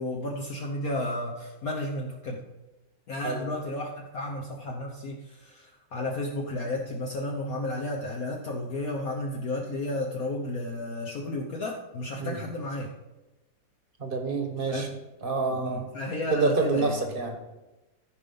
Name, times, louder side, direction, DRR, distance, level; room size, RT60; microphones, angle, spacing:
voice 1, 0.0-2.4 3.1-12.9 14.7-14.9 15.4-17.0, left 1 dB, 55° left, -1 dB, 1.4 m, -33 dB
voice 2, 14.0-14.9 15.2-15.8 16.3-17.4, right 4 dB, 30° right, 4 dB, 1.4 m, -27 dB
14.5 x 5.3 x 5.5 m, 1.0 s
omnidirectional pair, 2.0 m